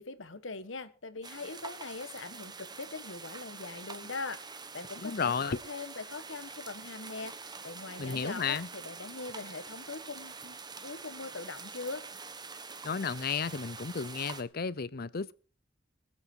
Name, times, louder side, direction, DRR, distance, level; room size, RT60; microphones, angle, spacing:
voice 1, 0.0-12.0, left 3 dB, 85° left, 1.4 m, -42 dB
sound 1, 1.2-14.4, right 4 dB, 20° right, 1.2 m, -45 dB
voice 2, 5.0-5.6 8.0-8.7 12.8-15.3, left 5 dB, 50° left, 0.7 m, -33 dB
21.5 x 8.5 x 4.6 m
head